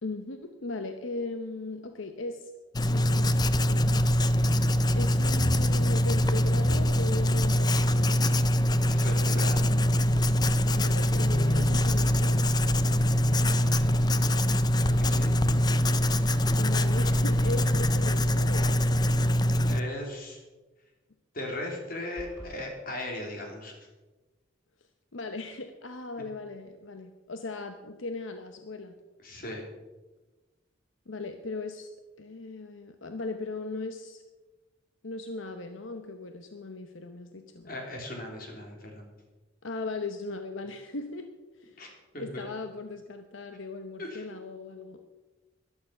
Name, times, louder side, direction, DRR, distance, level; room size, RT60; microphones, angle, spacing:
voice 1, 0.0-2.5 2.9-3.9 5.0-8.2 10.7-12.4 16.6-19.3 25.1-29.0 31.1-31.9 32.2-34.2 35.0-37.7 39.6-41.3 41.6-41.9 42.2-45.0, left 3 dB, 80° left, 7 dB, 0.9 m, -38 dB
Writing, 2.7-19.8, left 1 dB, 20° left, 0.5 m, -24 dB
voice 2, 8.9-9.7 13.5-14.3 14.8-15.5 19.7-20.4 21.3-23.7 29.2-29.7 37.6-39.1 41.8-42.5 44.0-44.2, left 1 dB, 50° left, 1 dB, 3.3 m, -38 dB
sound 1, 11.1-16.1, left 2 dB, 45° right, 2.2 m, -40 dB
sound 2, 22.2-22.6, equal, 5° right, 6.1 m, -44 dB
13.5 x 11.5 x 5.8 m, 1.2 s
head